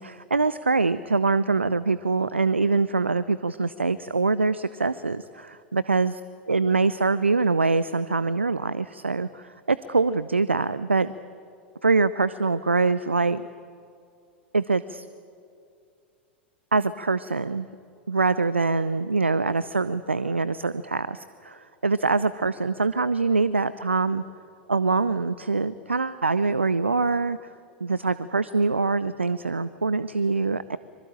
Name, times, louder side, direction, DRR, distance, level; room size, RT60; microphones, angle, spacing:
voice 1, 0.0-6.2 6.5-11.1 11.8-13.4 14.5-15.1 16.7-17.7 18.1-24.2 24.7-27.4 27.8-30.8, right 4 dB, 85° right, 16 dB, 0.6 m, -24 dB
25.0 x 23.0 x 8.9 m, 2.4 s
figure-of-eight pair, 90°, 6 cm